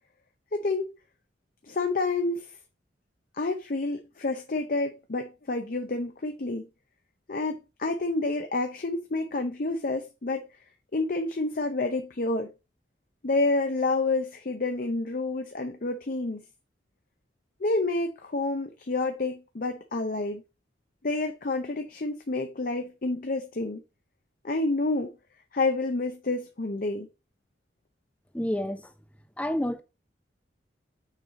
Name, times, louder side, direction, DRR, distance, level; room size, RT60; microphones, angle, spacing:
voice 1, 0.5-0.9 1.6-2.5 3.4-6.7 7.3-10.5 10.9-12.5 13.2-16.4 17.6-20.4 21.0-23.8 24.4-25.1 25.5-27.1, left 2 dB, 50° left, 0.7 m, -29 dB
voice 2, 28.3-28.9 29.4-29.8, left 1 dB, 10° left, 0.6 m, -29 dB
6.6 x 4.8 x 3.7 m
head